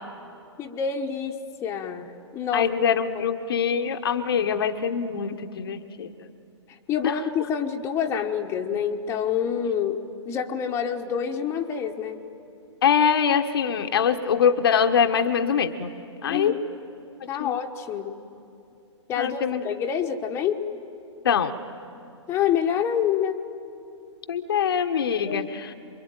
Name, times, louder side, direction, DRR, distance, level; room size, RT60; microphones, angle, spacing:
voice 1, 0.6-2.7 3.2-3.3 6.9-12.2 16.3-16.7 17.3-18.1 19.1-20.6 22.3-23.4 25.3-25.5, left 8 dB, 15° left, 3 dB, 1.1 m, -27 dB
voice 2, 2.5-6.1 7.0-7.2 12.8-15.9 16.2-16.5 17.4-17.5 19.2-19.6 21.2-21.6 24.3-25.7, left 7 dB, 50° left, 7 dB, 1.1 m, -23 dB
27.0 x 23.0 x 9.2 m, 2.7 s
figure-of-eight pair, 115°, 16 cm